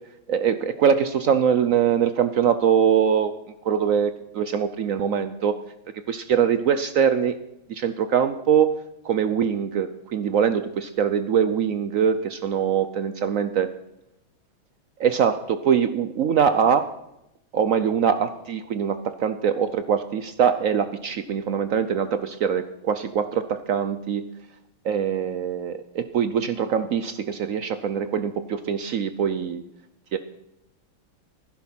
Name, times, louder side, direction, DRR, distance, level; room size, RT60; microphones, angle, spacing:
voice 1, 0.3-3.3 3.6-5.5 6.1-7.3 7.7-8.8 9.0-13.7 15.0-16.9 17.5-24.2 24.8-29.6 30.1-30.2, right 7 dB, 75° right, 12 dB, 0.7 m, -23 dB
16.0 x 10.5 x 5.9 m, 0.86 s
omnidirectional pair, 2.2 m